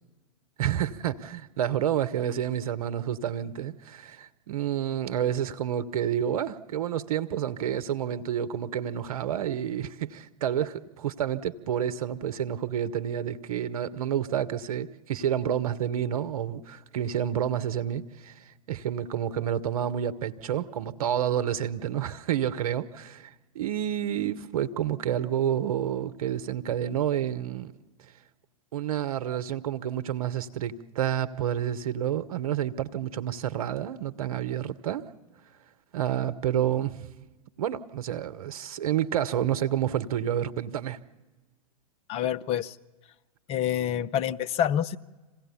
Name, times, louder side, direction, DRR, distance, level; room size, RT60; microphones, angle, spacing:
voice 1, 0.6-18.3 18.7-27.7 28.7-35.0 35.9-37.1 37.6-41.0, right 10 dB, 65° right, 1.0 m, -29 dB
voice 2, 42.1-42.8 43.5-45.0, left 10 dB, 30° left, 0.6 m, -27 dB
26.5 x 16.5 x 7.0 m
hypercardioid pair, 105°, 20 cm